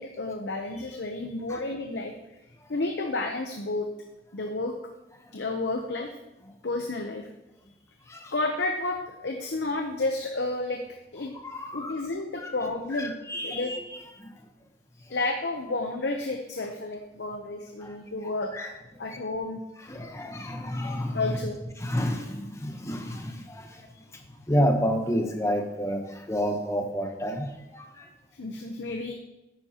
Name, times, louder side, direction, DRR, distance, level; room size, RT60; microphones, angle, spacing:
voice 1, 0.0-2.1 2.7-3.9 4.3-4.7 5.3-6.1 6.6-7.3 8.3-10.8 11.1-11.3 11.7-13.2 13.4-13.7 15.1-19.6 21.1-21.6 28.3-29.2, left 2 dB, 80° left, 3 dB, 0.8 m, -31 dB
voice 2, 11.4-11.9 12.4-12.5 13.0-13.8 14.2-14.3 17.8-18.0 18.5-18.7 19.9-21.4 21.8-28.1, equal, 15° left, 4 dB, 1.0 m, -30 dB
10.5 x 9.1 x 2.9 m, 0.95 s
head